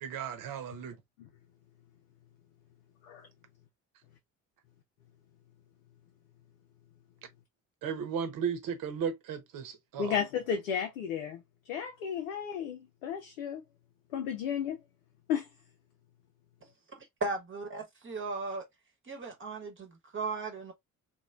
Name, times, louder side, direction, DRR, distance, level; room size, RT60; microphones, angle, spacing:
voice 1, 0.0-1.0 7.8-10.2, right 7 dB, 50° right, 0.9 m, -35 dB
voice 2, 10.0-13.6 14.1-14.8 15.3-15.5, left 8 dB, 75° left, 0.6 m, -33 dB
voice 3, 17.2-18.7 19.0-20.7, right 3 dB, 30° right, 1.1 m, -36 dB
3.0 x 2.2 x 2.3 m
figure-of-eight pair, 45°, 41 cm